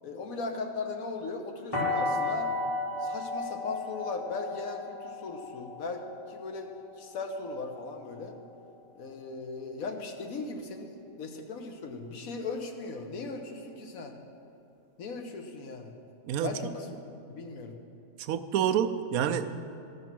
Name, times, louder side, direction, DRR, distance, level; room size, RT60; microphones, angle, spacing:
voice 1, 0.0-2.5 3.0-6.0 6.3-6.7 7.0-8.4 8.9-14.2 15.0-15.9 16.4-16.9 17.3-17.7, left 3 dB, 90° left, 4 dB, 1.4 m, -38 dB
sound 1, 1.7-7.6, left 2 dB, 25° left, 2.9 m, -34 dB
voice 2, 18.2-19.5, right 9 dB, 90° right, 10 dB, 1.0 m, -28 dB
14.0 x 6.2 x 6.0 m, 2.7 s
omnidirectional pair, 1.4 m